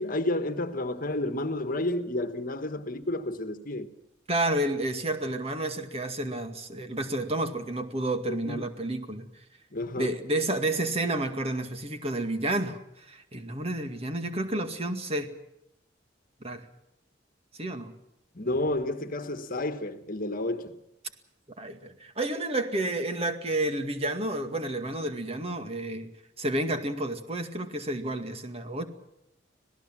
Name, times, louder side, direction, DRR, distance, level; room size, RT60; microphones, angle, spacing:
voice 1, 0.0-3.9 8.3-8.7 9.7-10.1 18.3-20.7, left 1 dB, 50° left, 1.6 m, -31 dB
voice 2, 4.3-9.3 10.0-15.3 16.4-16.7 17.6-17.9 21.6-28.9, right 1 dB, 35° right, 2.1 m, -30 dB
26.0 x 17.5 x 7.5 m
head